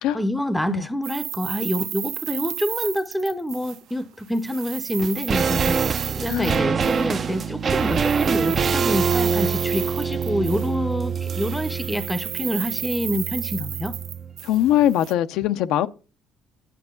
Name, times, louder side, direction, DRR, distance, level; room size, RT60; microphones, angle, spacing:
voice 1, 0.1-5.8 6.1-14.0, equal, 5° left, 0.7 m, -27 dB
sound 1, 1.0-4.0 4.3-7.1 7.7-10.9 11.2-15.1, right 11 dB, 70° right, 0.8 m, -33 dB
sound 2, 5.0-14.4 14.6-14.7, right 6 dB, 35° right, 0.5 m, -25 dB
voice 2, 6.3-6.6 14.4-15.9, left 12 dB, 90° left, 0.6 m, -21 dB
10.5 x 9.4 x 3.8 m
cardioid pair, 140°, 0 cm